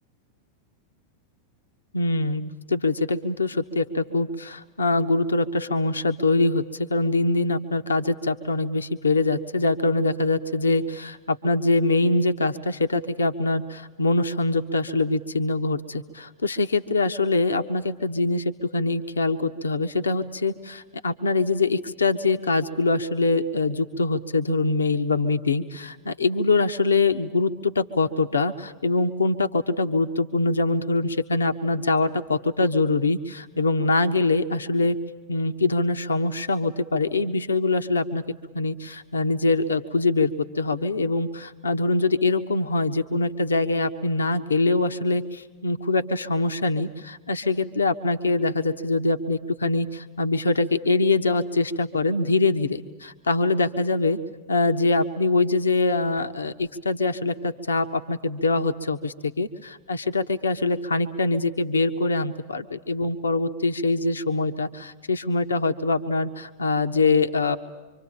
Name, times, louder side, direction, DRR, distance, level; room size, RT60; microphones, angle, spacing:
voice 1, 1.9-35.0 35.3-38.2 38.5-54.2 54.5-67.6, left 3 dB, 75° left, 7 dB, 1.1 m, -24 dB
26.0 x 25.5 x 8.7 m, 1.2 s
figure-of-eight pair, 90°, 0 cm